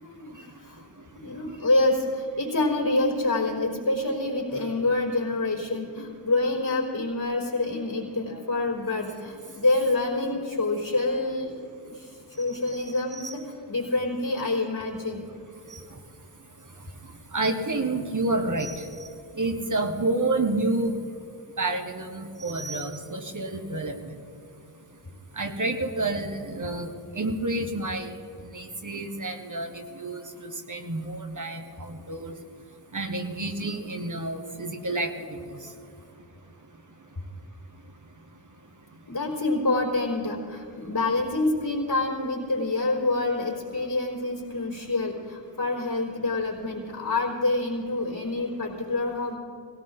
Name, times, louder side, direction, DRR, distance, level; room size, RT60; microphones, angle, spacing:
voice 1, 0.0-0.8 1.2-11.5 11.8-13.4 13.7-15.3 39.1-49.4, left 2 dB, 50° left, -4 dB, 4.1 m, -27 dB
voice 2, 12.5-13.3 15.7-16.0 17.3-19.1 19.4-21.0 21.6-24.2 25.3-28.1 28.4-32.3 32.9-35.7, right 2 dB, 40° right, 4 dB, 1.6 m, -30 dB
18.0 x 17.0 x 4.0 m, 2.5 s
cardioid pair, 45°, 45 cm